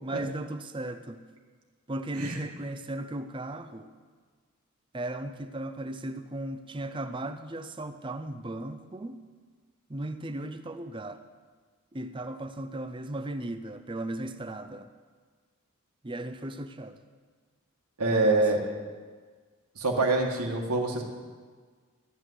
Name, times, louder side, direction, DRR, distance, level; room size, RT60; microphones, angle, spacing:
voice 1, 0.0-1.2 1.9-3.9 4.9-9.2 9.9-11.2 11.9-14.9 16.0-17.0 18.1-18.8, right 1 dB, 20° right, 10 dB, 0.6 m, -36 dB
voice 2, 18.0-18.6 19.8-21.0, right 2 dB, 85° right, 1 dB, 1.8 m, -25 dB
14.0 x 6.0 x 9.6 m, 1.5 s
head